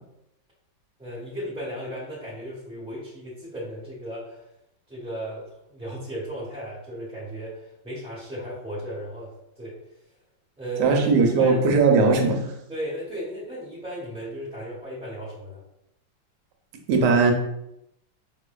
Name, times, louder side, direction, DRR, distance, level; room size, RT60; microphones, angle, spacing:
voice 1, 1.0-4.5 4.9-9.8 10.6-11.0 11.4-11.6 12.7-15.6, equal, 5° right, -7 dB, 0.6 m, -35 dB
voice 2, 10.8-12.4 16.9-17.3, right 4 dB, 70° right, 3 dB, 1.2 m, -18 dB
5.3 x 3.1 x 2.3 m, 0.82 s
omnidirectional pair, 2.1 m